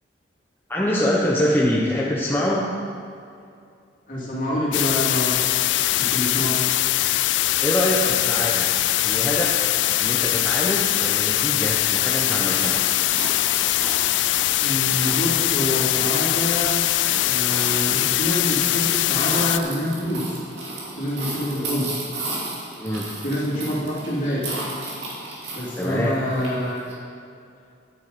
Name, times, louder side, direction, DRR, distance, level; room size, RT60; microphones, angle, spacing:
voice 1, 0.7-2.7 7.6-8.7 9.0-9.6 10.0-12.8 22.8-23.2 25.8-26.2, equal, 10° left, -4 dB, 0.8 m, -24 dB
voice 2, 4.1-5.3 5.9-6.8 14.6-16.8 17.2-20.4 20.9-21.9 23.2-24.5 25.5-26.8, equal, 45° left, -7 dB, 3.0 m, -26 dB
sound 1, 4.7-19.6, left 15 dB, 75° left, 0.3 m, -22 dB
sound 2, 9.3-26.9, right 2 dB, 65° right, 2.6 m, -35 dB
10.5 x 8.4 x 5.4 m, 2.4 s
head